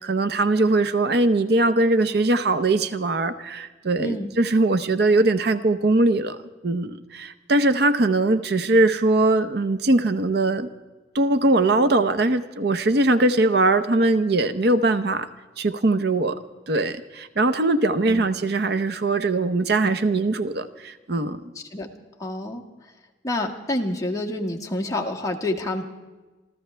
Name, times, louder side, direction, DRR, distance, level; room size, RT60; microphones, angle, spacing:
voice 1, 0.0-6.4 6.6-10.7 11.1-15.3 15.6-16.4 16.7-21.5, right 2 dB, 60° right, 11 dB, 0.8 m, -21 dB
voice 2, 4.0-4.3 18.1-18.2 21.7-21.9 22.2-22.6 23.2-25.8, left 1 dB, 20° left, 1 dB, 1.6 m, -27 dB
27.5 x 14.0 x 3.4 m, 1.2 s
head